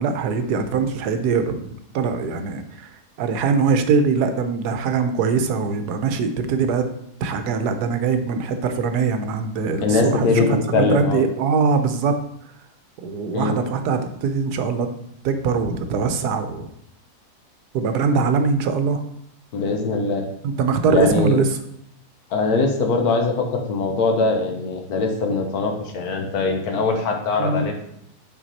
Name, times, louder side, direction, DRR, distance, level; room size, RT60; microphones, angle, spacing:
voice 1, 0.0-2.9 3.2-6.9 7.2-12.2 13.0-14.9 15.2-16.7 17.7-19.0 20.4-21.5 27.4-27.7, right 5 dB, 80° right, 8 dB, 1.2 m, -22 dB
voice 2, 9.8-11.2 13.3-13.6 19.5-20.3 20.9-21.4 22.3-27.9, left 3 dB, 70° left, 3 dB, 1.4 m, -22 dB
6.0 x 4.3 x 4.1 m, 0.73 s
omnidirectional pair, 1.7 m